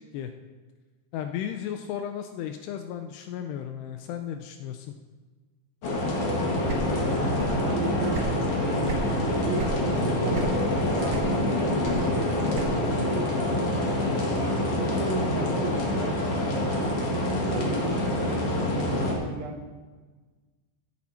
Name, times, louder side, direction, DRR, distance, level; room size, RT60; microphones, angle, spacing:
voice 1, 1.1-4.9, left 9 dB, 80° left, 7 dB, 2.4 m, -34 dB
sound 1, 5.8-19.1, left 1 dB, 45° left, 2.2 m, -26 dB
sound 2, 6.6-7.7 8.0-9.1 9.6-9.8 10.3-10.8 11.1-13.0, right 5 dB, 60° right, 3.4 m, -35 dB
voice 2, 7.6-8.9 9.3-13.7 14.3-16.3 16.7-18.2 18.8-19.6, right 5 dB, 85° right, 5 dB, 3.5 m, -36 dB
15.5 x 8.7 x 4.2 m, 1.3 s
omnidirectional pair, 5.2 m